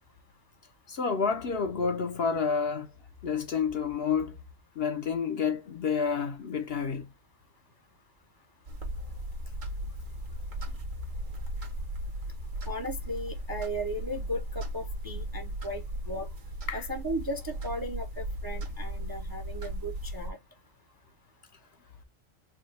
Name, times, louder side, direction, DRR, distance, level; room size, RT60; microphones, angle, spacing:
voice 1, 0.9-2.9 3.2-4.4 4.8-7.1 16.7-16.9, left 6 dB, 55° left, 0.9 m, -29 dB
sound 1, 8.7-20.3, right 1 dB, 75° right, 1.7 m, -37 dB
voice 2, 12.7-16.3 16.7-20.4, equal, 25° right, 0.5 m, -36 dB
4.7 x 2.2 x 3.2 m
omnidirectional pair, 1.4 m